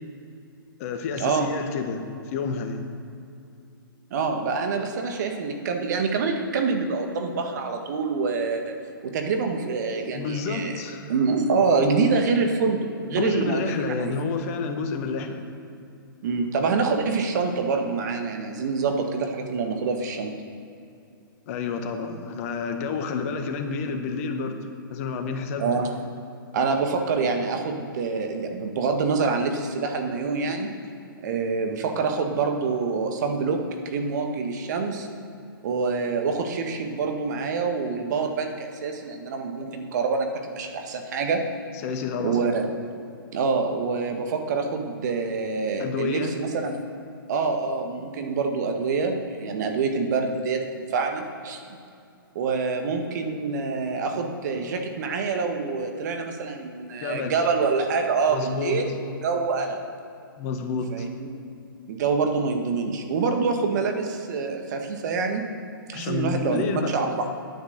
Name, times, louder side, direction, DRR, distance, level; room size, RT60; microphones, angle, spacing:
voice 1, 0.8-2.8 10.1-11.1 13.1-15.4 21.4-24.6 24.9-25.8 41.8-42.4 45.8-46.3 57.0-57.4 58.3-58.8 60.4-61.1 65.9-66.9, left 5 dB, 40° left, 5 dB, 1.3 m, -29 dB
voice 2, 4.1-8.7 9.0-10.8 11.1-14.2 16.2-20.4 25.6-25.9 26.5-30.7 31.2-35.1 35.6-41.4 42.2-42.6 43.3-46.8 47.3-51.6 52.3-59.8 60.9-61.3 61.9-65.4 65.9-67.3, right 4 dB, 50° right, 4 dB, 1.5 m, -26 dB
10.5 x 9.2 x 6.5 m, 2.6 s
hypercardioid pair, 125°, 12 cm